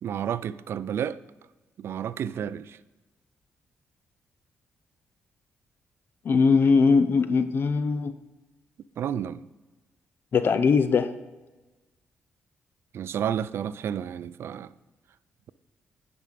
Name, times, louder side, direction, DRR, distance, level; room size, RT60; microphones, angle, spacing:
voice 1, 0.0-1.2 1.8-2.8 9.0-9.4 12.9-14.7, right 9 dB, 65° right, 0.3 m, -31 dB
voice 2, 6.2-8.1 10.3-11.1, left 5 dB, 55° left, 0.5 m, -21 dB
9.6 x 5.2 x 5.1 m
cardioid pair, 75°, 4 cm